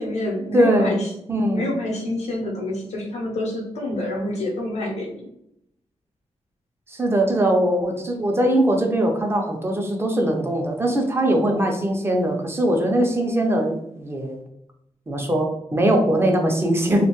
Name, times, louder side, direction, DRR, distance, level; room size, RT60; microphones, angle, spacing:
voice 1, 0.0-1.1 1.4-5.3, left 1 dB, 75° left, 0 dB, 0.8 m, -27 dB
voice 2, 0.5-0.9 1.3-1.6 6.9-14.4 15.1-17.1, right 1 dB, 20° right, 2 dB, 0.4 m, -21 dB
2.5 x 2.1 x 2.9 m, 0.78 s
wide cardioid pair, 140°, 11 cm